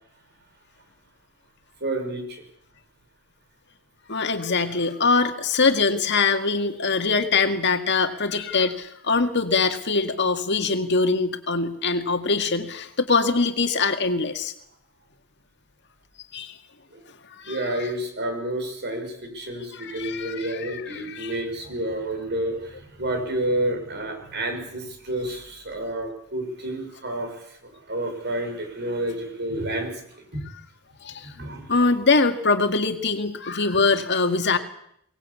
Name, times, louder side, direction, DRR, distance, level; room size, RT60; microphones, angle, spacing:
voice 1, 1.8-2.4 16.9-17.0 17.4-30.4 31.3-31.7, right 1 dB, 50° right, 5 dB, 6.3 m, -30 dB
voice 2, 4.1-14.5 16.3-16.6 17.3-17.9 19.7-21.4 31.0-31.3 31.7-34.6, left 4 dB, 55° left, 7 dB, 1.9 m, -23 dB
23.5 x 19.0 x 8.5 m, 0.71 s
head